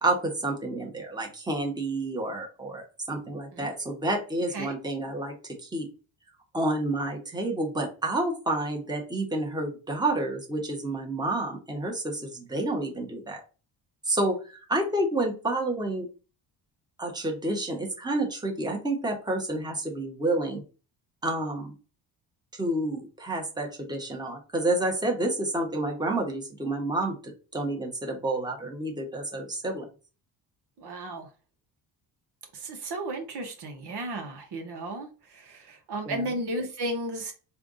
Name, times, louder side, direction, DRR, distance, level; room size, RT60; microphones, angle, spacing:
voice 1, 0.0-5.9 6.5-13.4 14.1-16.1 17.0-20.6 21.2-21.7 22.5-27.2 27.5-29.8 36.1-36.2, right 2 dB, 10° right, 1.2 m, -29 dB
voice 2, 30.8-31.3 32.5-37.3, right 1 dB, 55° right, 1.3 m, -34 dB
3.4 x 2.6 x 3.8 m
supercardioid pair, 70°, 46 cm